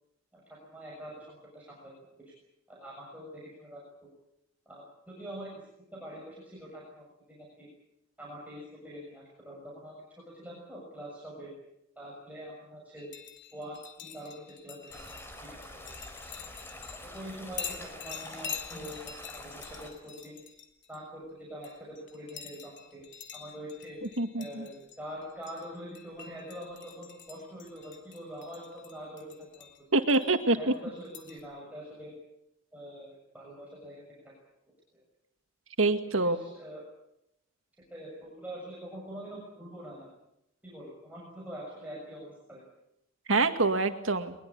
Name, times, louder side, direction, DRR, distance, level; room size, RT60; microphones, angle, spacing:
voice 1, 0.3-2.3 2.7-3.8 4.6-5.6 5.9-7.7 8.2-11.5 11.9-13.1 13.5-15.2 15.5-15.9 17.0-20.4 20.9-23.0 23.3-24.0 24.3-29.7 30.5-32.2 32.7-34.3 34.9-35.0 36.2-36.8 37.9-40.1 40.6-42.6, equal, 10° right, -4 dB, 6.8 m, -44 dB
sound 1, 13.0-17.2 17.5-21.0 21.6-30.4 30.7-31.4, left 8 dB, 60° left, 3.0 m, -45 dB
sound 2, 14.9-19.9, left 1 dB, 10° left, 4.5 m, -46 dB
voice 2, 24.2-24.7 29.9-30.7 35.8-36.4 43.3-44.3, right 2 dB, 75° right, 7 dB, 2.1 m, -25 dB
22.0 x 22.0 x 8.7 m, 0.85 s
head